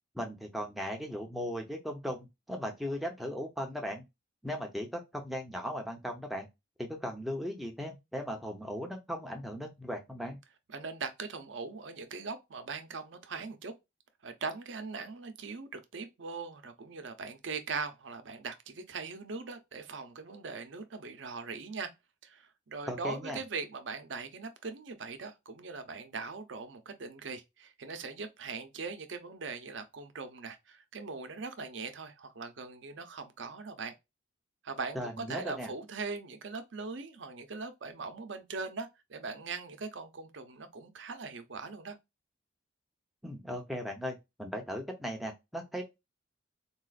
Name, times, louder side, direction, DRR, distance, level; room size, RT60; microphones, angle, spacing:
voice 1, 0.1-4.0 4.4-6.5 6.8-10.4 22.9-23.4 34.9-35.7 43.2-45.8, equal, ahead, 0.6 m, -37 dB
voice 2, 10.7-13.7 14.2-21.9 22.2-33.9 34.6-42.0, right 4 dB, 75° right, 0.6 m, -40 dB
3.9 x 2.4 x 2.4 m
head